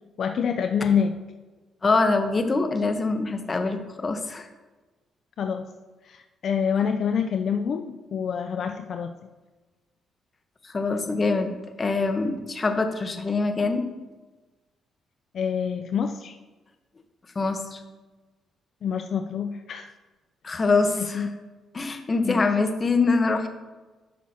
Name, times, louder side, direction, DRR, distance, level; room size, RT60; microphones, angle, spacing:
voice 1, 0.2-1.1 5.4-5.7 6.0-9.1 15.3-16.4 18.8-19.9 20.5-20.6 21.0-21.3 22.2-22.4, left 7 dB, 60° left, 6 dB, 0.4 m, -26 dB
voice 2, 1.8-4.5 10.7-11.5 11.8-13.8 17.3-17.8 20.4-21.3 21.7-23.5, left 3 dB, 30° left, 7 dB, 0.9 m, -24 dB
13.0 x 6.1 x 2.8 m, 1.2 s
cardioid pair, 90°, 0 cm